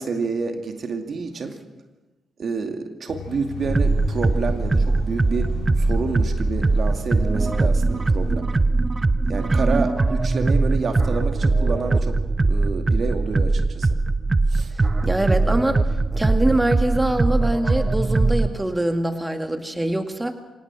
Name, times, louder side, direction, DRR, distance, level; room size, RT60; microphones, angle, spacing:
voice 1, 0.0-1.6 2.4-8.5 9.3-12.2 12.5-13.9 14.5-14.7, right 4 dB, 55° right, 5 dB, 2.3 m, -29 dB
sound 1, 3.1-8.3, left 5 dB, 75° left, 2.9 m, -34 dB
sound 2, 3.6-18.5, right 3 dB, 30° right, 0.8 m, -21 dB
voice 2, 15.0-20.3, right 1 dB, 15° right, 6 dB, 2.1 m, -24 dB
25.0 x 18.5 x 6.2 m, 1.1 s
supercardioid pair, 50°, 0 cm